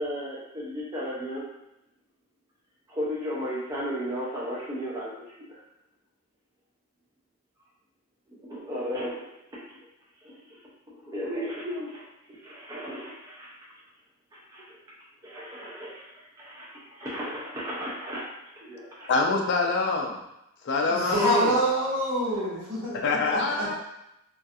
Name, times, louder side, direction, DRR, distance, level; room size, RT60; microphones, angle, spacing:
voice 1, 0.0-1.5 2.9-5.6 8.3-9.8 10.2-13.8 14.3-14.8 15.2-19.1, equal, 15° right, -8 dB, 0.4 m, -35 dB
voice 2, 19.1-20.2 20.6-21.6 22.9-23.8, left 3 dB, 50° left, 2 dB, 0.3 m, -25 dB
voice 3, 20.9-23.8, right 1 dB, 55° right, -8 dB, 1.1 m, -27 dB
2.4 x 2.3 x 2.5 m, 0.85 s
head